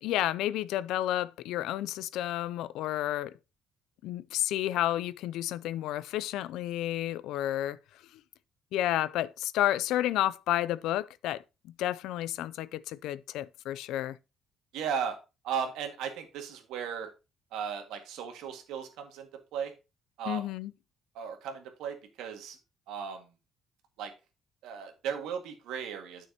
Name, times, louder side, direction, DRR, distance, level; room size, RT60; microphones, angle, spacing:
voice 1, 0.0-3.4 4.0-7.8 8.7-11.4 11.8-14.2 20.3-20.7, left 13 dB, 85° left, 0.4 m, -31 dB
voice 2, 14.7-15.2 15.4-17.1 17.5-19.7 20.2-20.5 21.2-22.6 22.9-23.3 24.0-24.1 24.6-26.3, right 7 dB, 90° right, 1.9 m, -36 dB
9.2 x 6.3 x 2.9 m
cardioid pair, 135°, 0 cm